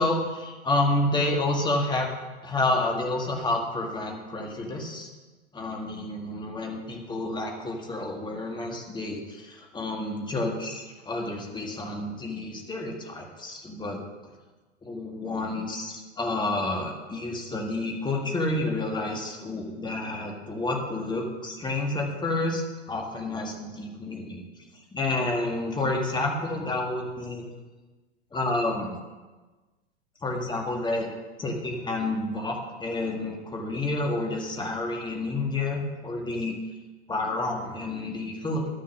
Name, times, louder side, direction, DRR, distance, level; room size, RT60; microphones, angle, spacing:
voice 1, 0.0-2.1 2.4-5.1 5.5-14.0 14.8-22.6 22.9-24.4 24.9-27.4 28.3-28.9 30.2-31.1 31.4-36.6 37.1-38.7, left 2 dB, 15° left, 1 dB, 1.9 m, -29 dB
12.5 x 6.6 x 6.3 m, 1.3 s
hypercardioid pair, 105°, 35 cm